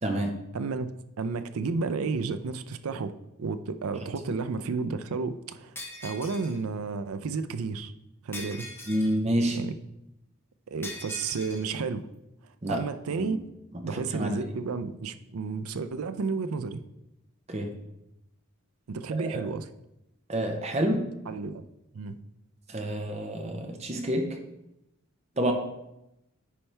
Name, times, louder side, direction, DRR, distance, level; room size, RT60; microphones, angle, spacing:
voice 1, 0.0-0.3 8.9-9.6 12.6-12.8 13.1-13.3 14.1-14.3 17.5-17.7 19.3-19.4 20.3-21.1 22.7-24.4 25.4-25.5, right 1 dB, 30° right, 3 dB, 0.8 m, -28 dB
voice 2, 0.5-0.9 1.2-5.7 6.0-7.9 8.2-8.7 9.5-9.7 10.7-12.1 12.7-13.4 13.8-16.8 18.9-19.7 21.3-21.6 21.9-22.2, right 4 dB, 80° right, 11 dB, 0.5 m, -32 dB
Shatter, 5.7-6.6 8.3-9.2 10.8-11.6, left 2 dB, 10° left, 1.1 m, -41 dB
9.9 x 4.3 x 3.4 m, 0.88 s
head